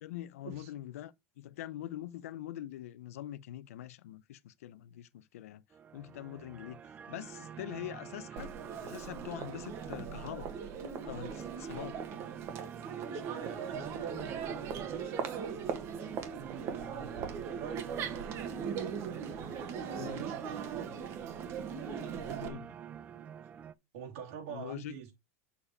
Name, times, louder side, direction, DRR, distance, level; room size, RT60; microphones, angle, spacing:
voice 1, 0.0-5.6 5.9-6.8 7.1-8.5 8.8-10.5 11.0-12.0 20.0-20.2 22.4-22.7 24.5-24.9, left 13 dB, 90° left, 0.6 m, -44 dB
sound 1, 5.7-23.7, right 9 dB, 20° right, 0.4 m, -48 dB
Crowd, 8.4-22.5, right 7 dB, 35° right, 1.5 m, -39 dB
voice 2, 13.0-15.3 16.3-19.0 19.9-21.0 21.9-23.2 23.9-25.1, right 8 dB, 70° right, 3.1 m, -46 dB
6.9 x 4.9 x 4.9 m
supercardioid pair, 155°, 8 cm